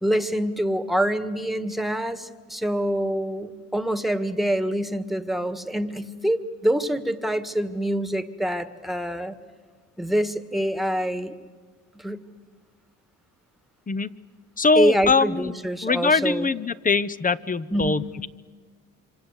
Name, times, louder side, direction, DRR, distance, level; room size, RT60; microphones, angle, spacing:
voice 1, 0.0-9.3 10.0-11.3 11.9-12.2 14.7-16.5 17.7-18.1, equal, ahead, 11 dB, 1.7 m, -25 dB
voice 2, 14.6-15.5 15.8-18.3, left 4 dB, 25° left, 16 dB, 0.9 m, -22 dB
26.0 x 26.0 x 8.3 m, 1.5 s
cardioid pair, 80°, 32 cm